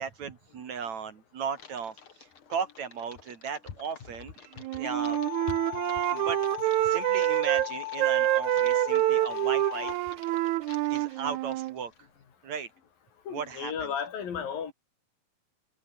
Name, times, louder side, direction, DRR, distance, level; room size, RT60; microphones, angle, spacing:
voice 1, 0.0-4.3 4.7-5.2 6.1-6.4 6.8-9.9 10.9-12.1 12.4-12.7 13.3-13.9, right 6 dB, 55° right, 3.2 m, -36 dB
Typing, 1.6-12.0, left 6 dB, 40° left, 2.7 m, -52 dB
Wind instrument woodwind instrument, 4.6-7.7 8.0-11.8, right 18 dB, 85° right, 1.6 m, -27 dB
sound 1, 4.8-10.0, left 17 dB, 90° left, 2.7 m, -37 dB
voice 2, 13.3-14.7, left 7 dB, 70° left, 4.9 m, -34 dB
omnidirectional pair, 4.2 m